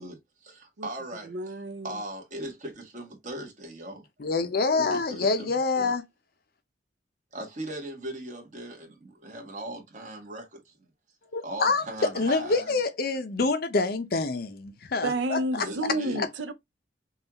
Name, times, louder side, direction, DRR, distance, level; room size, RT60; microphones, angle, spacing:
voice 1, 0.0-1.5 1.8-4.0 4.9-5.5 5.8-5.9 7.3-10.9 11.4-12.8 15.6-16.3, right 1 dB, 40° right, 1.3 m, -39 dB
voice 2, 1.2-2.0 15.0-16.5, right 1 dB, 75° right, 0.6 m, -31 dB
voice 3, 4.2-6.0 11.3-11.8 12.2-15.7 16.2-16.3, left 3 dB, 50° left, 0.6 m, -26 dB
5.5 x 2.4 x 2.8 m
head